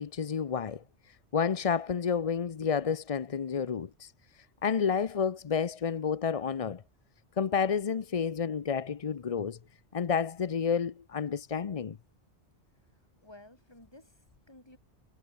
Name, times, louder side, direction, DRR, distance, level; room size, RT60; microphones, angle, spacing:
voice 1, 0.0-6.8 7.4-9.6 9.9-12.0, left 6 dB, 40° left, 0.6 m, -30 dB
voice 2, 13.2-14.8, left 1 dB, 20° left, 4.0 m, -54 dB
omnidirectional pair, 1.2 m